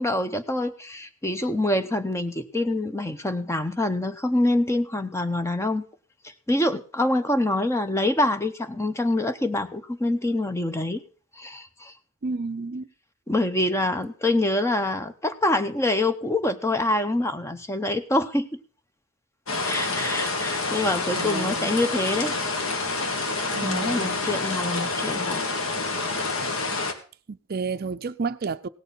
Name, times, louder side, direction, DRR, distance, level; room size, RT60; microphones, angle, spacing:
voice 1, 0.0-5.9 6.2-11.0 11.4-11.9 13.3-18.6 19.6-22.4 23.6-25.4, left 1 dB, 15° left, 0.7 m, -25 dB
voice 2, 12.2-12.9 21.2-21.7 23.5-24.2 27.3-28.7, right 4 dB, 45° right, 0.5 m, -31 dB
sound 1, 19.5-26.9, left 3 dB, 70° left, 1.5 m, -28 dB
17.0 x 6.8 x 5.5 m
head